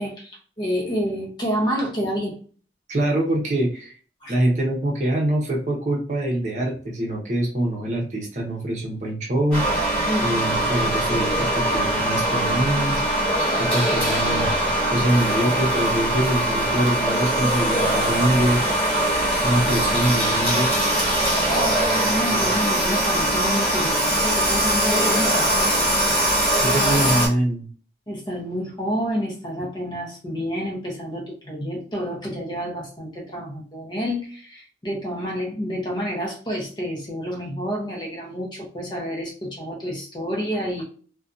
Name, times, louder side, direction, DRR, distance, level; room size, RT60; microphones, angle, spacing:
voice 1, 0.0-2.4 4.2-4.3 10.1-10.3 22.0-25.9 28.1-40.8, equal, 25° left, -1 dB, 0.7 m, -29 dB
voice 2, 2.9-4.0 4.3-9.6 10.2-13.0 13.6-14.5 14.9-18.6 19.4-20.7 22.3-22.5 26.6-27.7, right 1 dB, 40° right, -2 dB, 0.7 m, -24 dB
sound 1, 9.5-27.3, right 1 dB, 5° left, 1.4 m, -21 dB
2.6 x 2.2 x 2.4 m, 0.42 s
head